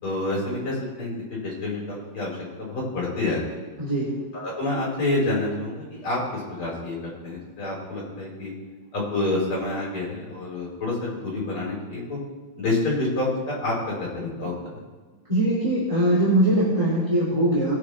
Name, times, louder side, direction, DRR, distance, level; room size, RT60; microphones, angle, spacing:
voice 1, 0.0-3.6 4.3-8.5 8.9-12.2 12.6-14.8, left 2 dB, 45° left, -4 dB, 4.7 m, -28 dB
voice 2, 3.8-4.2 15.3-17.8, right 1 dB, 10° right, -9 dB, 2.7 m, -21 dB
20.5 x 8.1 x 3.3 m, 1.3 s
omnidirectional pair, 3.3 m